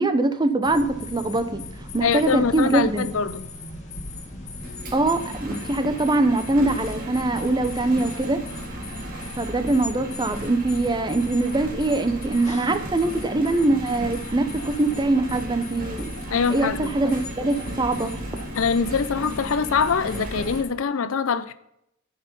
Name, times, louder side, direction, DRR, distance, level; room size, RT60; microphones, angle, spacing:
voice 1, 0.0-1.6 1.9-3.1 4.9-8.4 9.4-16.1 16.5-18.1, right 2 dB, 20° right, 0.7 m, -23 dB
sound 1, 0.6-20.6, left 2 dB, 35° left, 1.7 m, -38 dB
voice 2, 2.0-3.5 16.3-16.9 18.5-21.5, left 5 dB, 75° left, 0.6 m, -24 dB
Engine, 4.6-20.6, right 1 dB, 45° right, 2.1 m, -36 dB
11.0 x 5.7 x 5.3 m
head